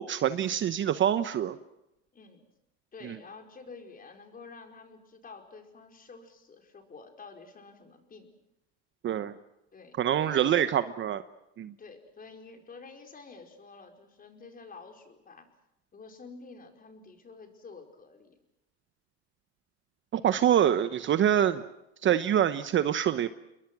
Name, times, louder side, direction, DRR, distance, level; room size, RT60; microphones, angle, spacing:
voice 1, 0.0-1.6 3.0-3.2 9.0-9.3 10.0-11.2 11.6-11.7 20.1-21.6 22.0-23.3, right 10 dB, 35° right, 12 dB, 1.0 m, -25 dB
voice 2, 2.1-2.4 2.9-8.3 9.7-10.8 11.8-15.5 15.9-18.4 20.4-20.6, left 4 dB, 25° left, 4 dB, 4.8 m, -49 dB
29.5 x 22.0 x 6.1 m, 0.88 s
supercardioid pair, 110°, 35 cm